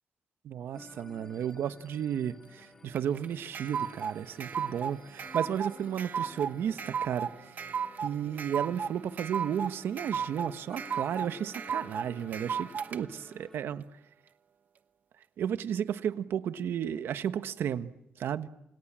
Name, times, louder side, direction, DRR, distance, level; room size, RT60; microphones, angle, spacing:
voice 1, 0.4-7.6 8.0-13.8 15.4-17.9 18.2-18.5, right 9 dB, 85° right, 1.3 m, -33 dB
sound 1, 0.7-13.7, left 2 dB, 15° left, 1.8 m, -54 dB
sound 2, 2.9-13.0, right 7 dB, 50° right, 1.1 m, -35 dB
29.0 x 27.5 x 7.5 m
wide cardioid pair, 165°, 4 cm